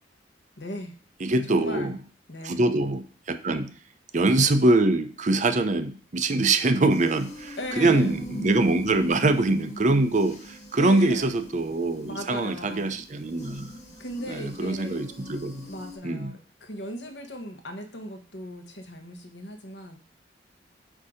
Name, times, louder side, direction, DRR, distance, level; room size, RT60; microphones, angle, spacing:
voice 1, 0.6-0.9 1.5-2.0 2.3-2.6 7.6-8.1 10.8-11.3 12.0-13.0 14.0-15.0 15.7-20.0, left 1 dB, 75° left, 5 dB, 1.1 m, -37 dB
voice 2, 1.2-2.0 2.4-3.7 4.1-13.7 14.3-15.7 16.0-16.3, right 2 dB, 45° right, 8 dB, 0.6 m, -24 dB
sound 1, 6.9-16.0, equal, 40° left, 1.5 m, -40 dB
8.2 x 2.8 x 5.0 m, 0.41 s
head